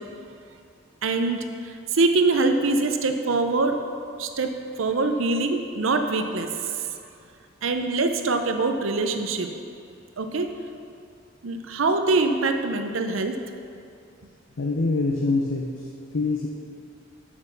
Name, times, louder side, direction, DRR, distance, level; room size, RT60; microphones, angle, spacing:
voice 1, 1.0-1.4 1.9-3.8 4.2-6.7 7.6-9.7 10.2-10.5 11.4-13.4, right 3 dB, 80° right, 6 dB, 0.6 m, -24 dB
voice 2, 14.6-16.5, left 3 dB, 75° left, 0 dB, 0.7 m, -25 dB
6.2 x 6.1 x 6.6 m, 2.6 s
head